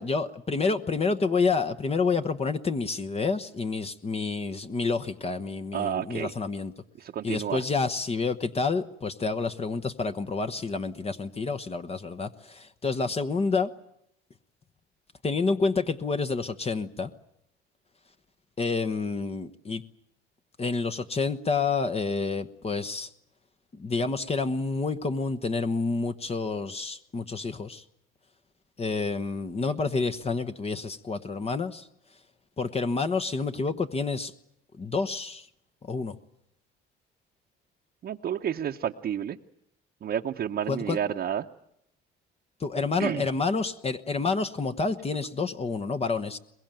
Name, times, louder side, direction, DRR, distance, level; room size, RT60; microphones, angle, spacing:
voice 1, 0.0-6.7 7.2-13.7 15.2-17.1 18.6-19.8 20.6-23.1 23.7-27.8 28.8-31.9 32.6-34.3 34.8-35.5 35.8-36.2 40.7-41.0 42.6-46.4, left 4 dB, 30° left, 8 dB, 1.1 m, -28 dB
voice 2, 5.7-6.3 7.0-7.6 38.0-39.4 40.0-41.5 43.0-43.2, right 9 dB, 50° right, 3 dB, 0.9 m, -30 dB
22.5 x 21.0 x 9.0 m, 0.75 s
cardioid pair, 90°, 21 cm